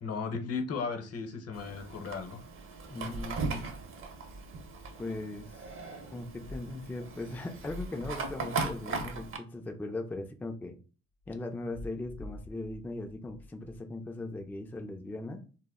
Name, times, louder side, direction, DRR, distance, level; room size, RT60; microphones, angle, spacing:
voice 1, 0.0-2.4, left 5 dB, 55° left, 0.8 m, -35 dB
Fire, 1.5-9.4, right 4 dB, 45° right, 0.6 m, -38 dB
voice 2, 2.9-3.7 5.0-5.7 6.1-10.8 11.3-15.4, left 2 dB, 5° left, 0.3 m, -39 dB
sound 1, 6.4-7.0 7.6-8.4 11.2-13.8, left 2 dB, 90° left, 0.6 m, -46 dB
2.1 x 2.0 x 3.5 m
cardioid pair, 90°, 30 cm